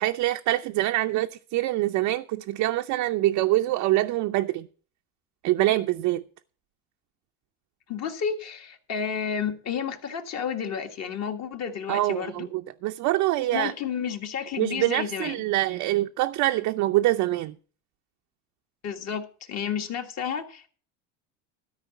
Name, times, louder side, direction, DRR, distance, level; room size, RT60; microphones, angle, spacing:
voice 1, 0.0-4.7 5.4-6.2 11.9-13.7 14.6-17.5, right 16 dB, 50° right, 0.6 m, -25 dB
voice 2, 7.9-12.5 13.5-15.4 18.8-20.7, left 7 dB, 40° left, 1.7 m, -31 dB
13.0 x 4.9 x 8.1 m
supercardioid pair, 125°, 40 cm